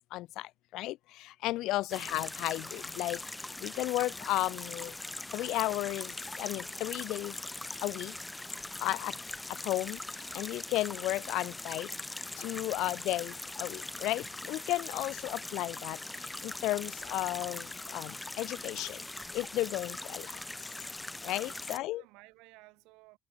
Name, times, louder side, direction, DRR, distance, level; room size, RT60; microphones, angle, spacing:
voice 1, 0.1-3.2 3.6-4.9 5.3-7.3 7.8-8.1 8.8-9.1 9.6-10.0 10.3-11.9 12.4-16.0 16.4-19.0 19.3-20.3 21.2-22.0, left 17 dB, 75° left, 0.4 m, -34 dB
sound 1, 1.9-21.8, left 2 dB, 10° left, 0.4 m, -41 dB
voice 2, 21.3-23.2, right 24 dB, 85° right, 6.0 m, -57 dB
cardioid pair, 110°, 0 cm